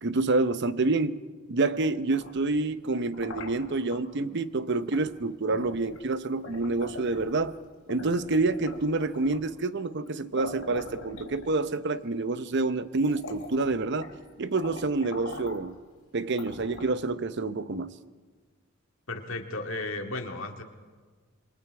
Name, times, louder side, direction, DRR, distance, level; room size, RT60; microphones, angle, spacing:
voice 1, 0.0-1.2 1.5-7.6 7.9-14.1 14.4-15.8 16.1-18.0, right 3 dB, 55° right, 0.8 m, -28 dB
sound 1, 1.9-4.0 4.9-5.1 5.5-7.5 7.9-9.5 10.1-10.2 10.4-11.8 12.5-12.6 13.0-14.2 14.5-15.7 16.3-17.1, left 2 dB, 85° left, 3.6 m, -43 dB
voice 2, 19.1-20.6, left 2 dB, 70° left, 2.2 m, -34 dB
27.0 x 23.5 x 4.8 m
head